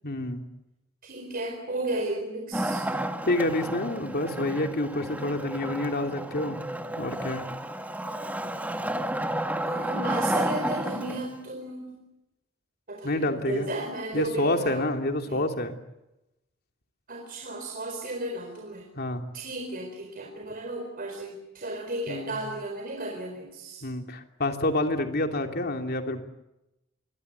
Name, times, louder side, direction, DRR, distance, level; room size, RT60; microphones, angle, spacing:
voice 1, 0.0-0.4 3.3-6.6 7.0-7.5 13.0-13.7 14.1-15.8 18.9-19.2 22.1-22.4 23.8-26.2, left 1 dB, 50° left, 5 dB, 3.0 m, -28 dB
voice 2, 1.0-2.9 9.6-12.0 12.9-14.9 15.3-15.4 17.1-18.9 19.3-23.9, right 1 dB, 45° right, 2 dB, 4.5 m, -34 dB
Wood, 2.5-11.4, right 1 dB, 10° right, 1.8 m, -31 dB
26.5 x 22.5 x 8.3 m, 0.92 s
head